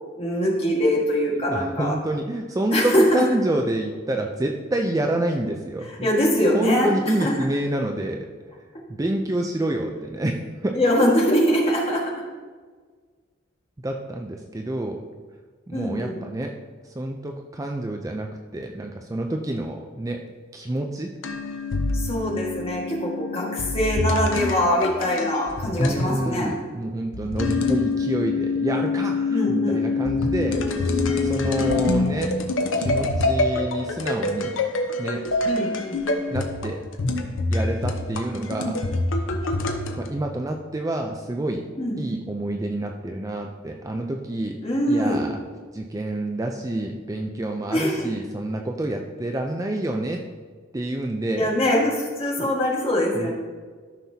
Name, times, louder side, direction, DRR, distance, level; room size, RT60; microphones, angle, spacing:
voice 1, 0.2-1.9 2.7-3.2 6.0-6.9 7.2-7.3 10.7-12.0 15.7-16.2 21.9-26.5 29.3-29.8 35.4-36.0 41.8-42.0 44.6-45.3 47.7-48.1 51.4-53.3, equal, 30° left, -3 dB, 1.7 m, -23 dB
voice 2, 1.5-6.1 6.5-8.3 8.9-10.8 13.8-15.0 15.7-16.6 16.8-20.2 20.5-21.1 25.8-32.3 32.8-34.6 35.0-35.3 36.3-36.8 37.5-38.8 40.0-41.7 42.0-44.6 44.9-45.4 45.7-50.2 50.7-51.5 52.4-52.5 53.1-53.3, right 1 dB, 15° right, 3 dB, 0.4 m, -28 dB
sound 1, 21.2-26.2 27.1-40.1, left 3 dB, 80° left, 0.8 m, -25 dB
13.0 x 5.8 x 2.8 m, 1.5 s
head